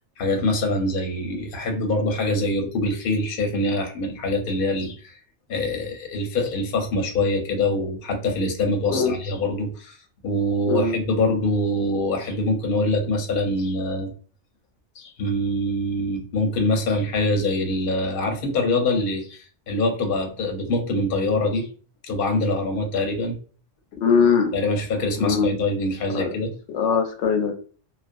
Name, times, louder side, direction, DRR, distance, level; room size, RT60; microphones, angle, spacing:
voice 1, 0.2-5.2 5.5-10.0 10.2-14.1 15.0-21.7 22.0-23.4 24.5-26.5, left 2 dB, 55° left, 3 dB, 0.7 m, -24 dB
voice 2, 24.0-24.5 25.2-25.5 26.1-26.3 26.7-27.5, left 5 dB, 90° left, 4 dB, 0.9 m, -21 dB
2.4 x 2.2 x 2.5 m, 0.39 s
omnidirectional pair, 1.2 m